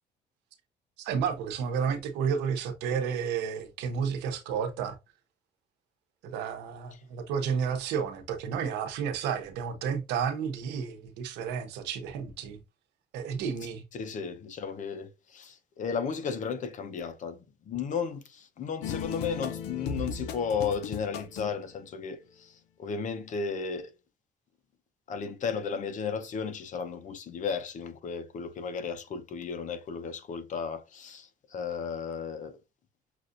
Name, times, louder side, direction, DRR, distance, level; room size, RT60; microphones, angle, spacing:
voice 1, 1.0-4.9 6.3-12.6 13.1-13.8, right 7 dB, 90° right, 0.9 m, -31 dB
voice 2, 13.9-23.9 25.1-32.6, left 6 dB, 50° left, 0.8 m, -34 dB
sound 1, 18.8-21.6, left 6 dB, 85° left, 0.7 m, -36 dB
6.1 x 2.5 x 2.6 m
cardioid pair, 110°, 17 cm